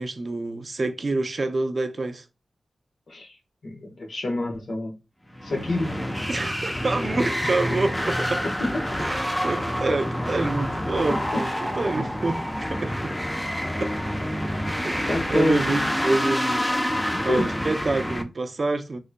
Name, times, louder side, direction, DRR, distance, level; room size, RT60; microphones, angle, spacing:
voice 1, 0.0-2.2 6.3-8.4 9.0-13.2 13.8-13.9 14.8-19.0, right 3 dB, 55° right, 0.6 m, -27 dB
voice 2, 3.6-4.9 5.4-5.9 8.4-8.5 15.1-15.8 17.1-17.4, left 2 dB, 75° left, 1.3 m, -27 dB
sound 1, 5.3-18.2, equal, 10° left, 0.7 m, -27 dB
3.8 x 3.2 x 2.2 m
cardioid pair, 55°, 0 cm